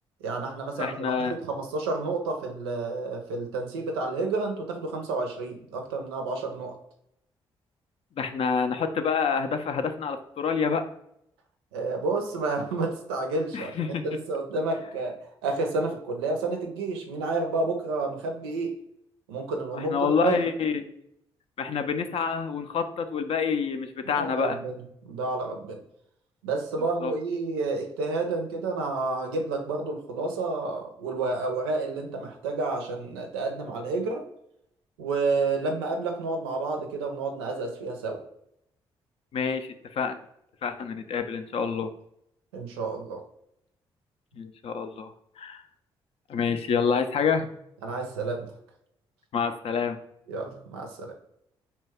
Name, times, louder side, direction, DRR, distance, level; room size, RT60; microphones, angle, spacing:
voice 1, 0.2-6.7 11.7-15.1 15.4-18.7 19.3-20.4 24.1-25.8 26.4-34.2 35.0-38.2 42.5-43.2 47.8-48.5 50.3-51.1, right 3 dB, 90° right, 3 dB, 0.5 m, -30 dB
voice 2, 0.8-1.3 8.2-10.8 13.5-14.0 19.7-20.9 21.6-24.6 27.0-27.1 39.3-40.2 40.6-41.9 44.3-45.6 46.3-47.5 49.3-50.0, left 6 dB, 50° left, 8 dB, 0.4 m, -27 dB
2.8 x 2.2 x 3.3 m, 0.75 s
hypercardioid pair, 45°, 13 cm